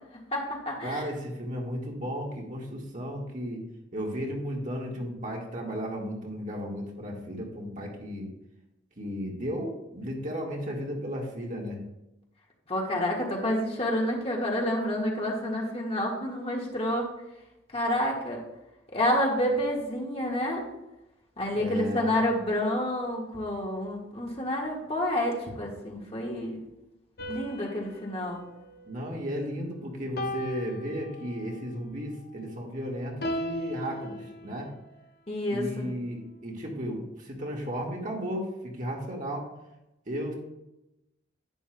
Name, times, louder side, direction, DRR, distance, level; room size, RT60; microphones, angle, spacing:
voice 1, 0.3-1.0 12.7-17.1 17.7-18.4 18.9-20.6 21.4-26.6 27.3-28.4 35.3-35.9, left 1 dB, 30° left, -1 dB, 1.6 m, -29 dB
voice 2, 0.8-3.6 3.9-8.3 9.0-11.8 21.5-22.2 28.9-34.7 35.5-39.5 40.1-40.3, equal, 45° right, -1 dB, 1.7 m, -34 dB
sound 1, 27.2-29.6 30.2-31.6 33.2-34.9, left 1 dB, 55° left, 0.7 m, -37 dB
11.0 x 9.3 x 2.3 m, 0.93 s
head